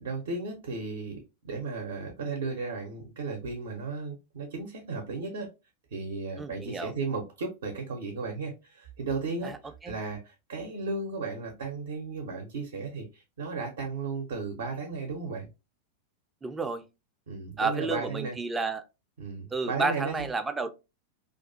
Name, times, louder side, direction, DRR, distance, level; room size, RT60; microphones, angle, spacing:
voice 1, 0.0-5.5 5.9-15.5 17.3-18.4 19.2-20.3, right 4 dB, 60° right, 0.6 m, -35 dB
voice 2, 6.4-6.9 9.4-9.6 9.8-10.0 16.4-16.8 17.6-18.8 19.5-20.7, right 3 dB, 10° right, 0.3 m, -31 dB
2.4 x 2.3 x 2.5 m
figure-of-eight pair, 90°, 0 cm